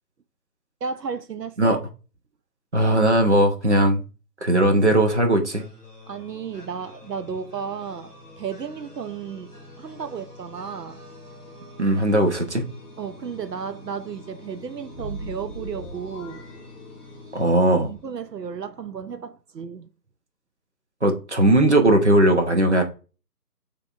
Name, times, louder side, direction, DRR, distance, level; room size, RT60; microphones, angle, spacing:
voice 1, 0.8-1.8 6.1-11.0 13.0-16.4 17.9-19.9, right 6 dB, 75° right, 0.6 m, -33 dB
voice 2, 2.7-4.0 4.4-5.7 11.8-12.6 17.3-17.9 21.0-22.8, right 1 dB, 45° right, 0.8 m, -18 dB
sound 1, 5.5-18.4, left 2 dB, 10° right, 1.5 m, -46 dB
sound 2, 14.9-17.5, right 1 dB, 45° left, 0.9 m, -39 dB
5.5 x 3.4 x 2.4 m
figure-of-eight pair, 160°, 50 cm